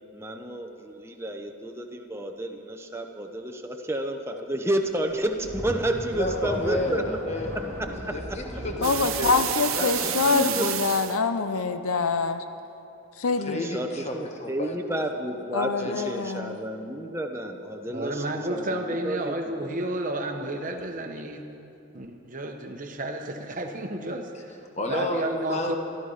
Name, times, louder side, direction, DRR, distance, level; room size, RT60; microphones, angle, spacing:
voice 1, 0.1-7.2 7.8-8.1 10.0-10.7 13.6-19.3 19.6-19.7, right 1 dB, 10° right, 4 dB, 0.7 m, -31 dB
sound 1, 5.1-9.4, equal, 10° left, 2.6 m, -37 dB
voice 2, 6.1-7.5 8.1-10.1 10.4-10.5 13.4-15.0 15.8-16.0 24.8-25.8, left 1 dB, 30° left, 3 dB, 1.2 m, -31 dB
voice 3, 8.8-12.4 13.2-13.6 15.5-16.6, left 4 dB, 85° left, 9 dB, 0.7 m, -25 dB
sound 2, 8.8-11.2, right 11 dB, 70° right, 0.7 m, -30 dB
voice 4, 17.9-21.4 21.9-24.6 24.9-25.8, right 1 dB, 40° right, 4 dB, 1.0 m, -31 dB
14.0 x 12.0 x 5.7 m, 2.7 s
head